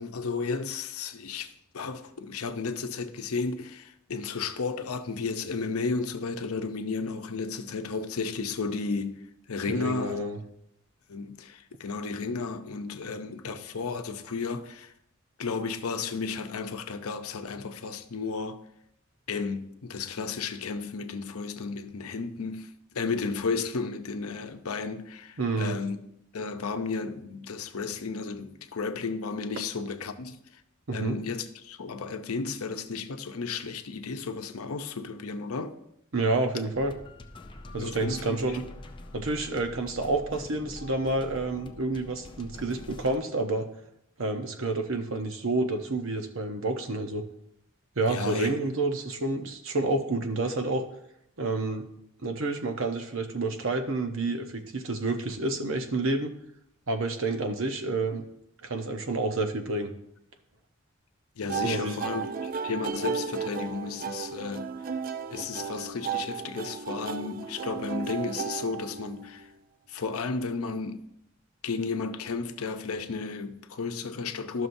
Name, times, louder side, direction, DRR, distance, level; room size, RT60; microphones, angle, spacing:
voice 1, 0.0-9.2 9.5-10.2 11.1-14.9 15.4-18.6 19.3-22.7 22.9-26.0 26.3-30.4 30.9-35.8 37.8-38.6 48.1-48.5 61.4-64.7 65.3-69.5 69.9-71.0 71.6-74.7, left 4 dB, 85° left, 0.7 m, -33 dB
voice 2, 9.7-10.4 25.4-25.8 30.9-31.1 36.1-36.9 37.7-38.6 39.1-43.7 44.2-47.2 48.0-50.8 51.4-51.8 52.2-56.3 56.9-58.2 58.6-59.9 61.6-62.0, right 2 dB, 65° right, 0.9 m, -29 dB
sound 1, 36.7-43.2, left 2 dB, 20° left, 0.5 m, -45 dB
sound 2, 61.5-69.4, right 6 dB, 40° right, 0.4 m, -34 dB
12.5 x 6.1 x 2.6 m
head